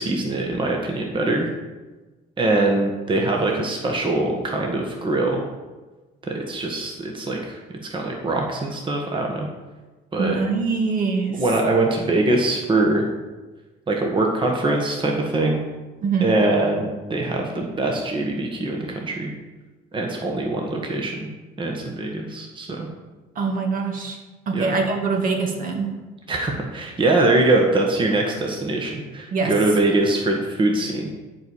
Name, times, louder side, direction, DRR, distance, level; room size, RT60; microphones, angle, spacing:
voice 1, 0.0-1.5 2.4-5.4 6.3-9.5 10.1-10.4 11.3-13.0 13.9-15.6 16.2-19.3 19.9-21.3 21.6-22.9 24.5-24.7 26.3-31.1, right 2 dB, 30° right, 1 dB, 1.5 m, -23 dB
voice 2, 10.2-11.4 16.0-16.3 23.4-24.2 24.5-25.9 29.3-29.5, right 4 dB, 55° right, 2 dB, 1.9 m, -23 dB
11.0 x 4.8 x 7.2 m, 1.2 s
cardioid pair, 110°, 17 cm